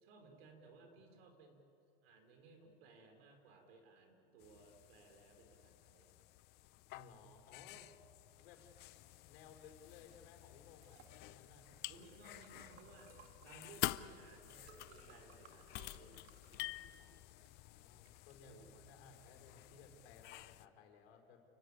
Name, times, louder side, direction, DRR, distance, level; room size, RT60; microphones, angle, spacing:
voice 1, 0.0-1.6 2.0-6.2 11.9-13.1 13.4-16.3 18.4-18.8, right 3 dB, 70° right, 5 dB, 4.6 m, -61 dB
sound 1, 4.4-20.7, left 18 dB, 35° left, 0.5 m, -49 dB
voice 2, 6.9-7.9 8.4-8.6 9.2-11.7 17.0-21.4, left 5 dB, 65° left, 3 dB, 4.8 m, -61 dB
Liquid, 10.1-20.2, right 7 dB, 85° right, 2.1 m, -66 dB
29.5 x 15.0 x 9.9 m, 2.8 s
supercardioid pair, 140°, 31 cm